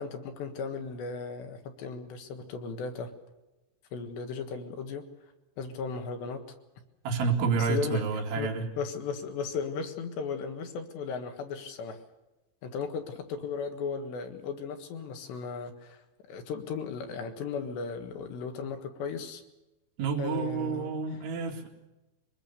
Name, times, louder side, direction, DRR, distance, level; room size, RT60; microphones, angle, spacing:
voice 1, 0.0-3.1 3.9-5.1 5.6-6.5 7.4-8.0 8.4-12.0 12.6-19.4 20.2-21.0, left 5 dB, 75° left, 6 dB, 3.8 m, -36 dB
voice 2, 7.0-8.7 20.0-21.7, right 5 dB, 85° right, 1 dB, 5.0 m, -29 dB
23.5 x 20.5 x 6.9 m, 1.0 s
omnidirectional pair, 5.2 m